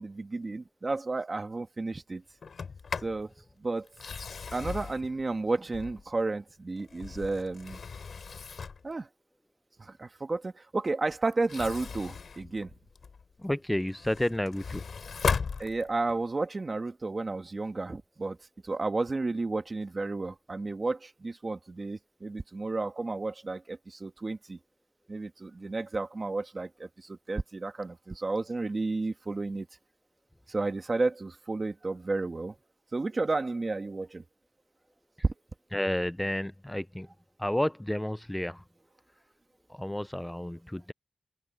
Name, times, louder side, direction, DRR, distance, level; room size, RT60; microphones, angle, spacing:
voice 1, 0.0-2.2 3.0-3.3 3.6-3.9 4.5-7.8 8.8-9.1 9.8-12.7 15.6-18.4 18.6-24.6 25.1-29.7 30.5-32.6 32.9-34.2 35.2-35.3, right 3 dB, 30° right, 1.8 m, -32 dB
Sliding door, 2.4-3.2 3.9-6.2 6.8-8.9 11.3-13.2 13.7-16.2, left 5 dB, 60° left, 3.2 m, -37 dB
voice 2, 13.4-14.8 35.7-37.1 37.4-38.6 39.7-40.9, left 1 dB, 5° left, 0.3 m, -31 dB
wide cardioid pair, 125°, 0 cm